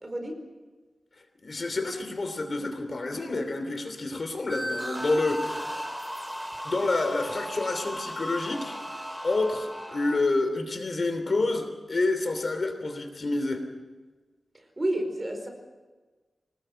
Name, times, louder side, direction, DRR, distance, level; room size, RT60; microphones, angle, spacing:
voice 1, 0.0-0.4 14.8-15.5, right 1 dB, 25° right, 4 dB, 4.9 m, -30 dB
voice 2, 1.4-5.6 6.6-13.7, left 2 dB, 45° left, 7 dB, 3.0 m, -28 dB
sound 1, 4.5-10.1, equal, 5° right, 3.4 m, -36 dB
26.0 x 19.5 x 7.7 m, 1.3 s
wide cardioid pair, 135°, 0 cm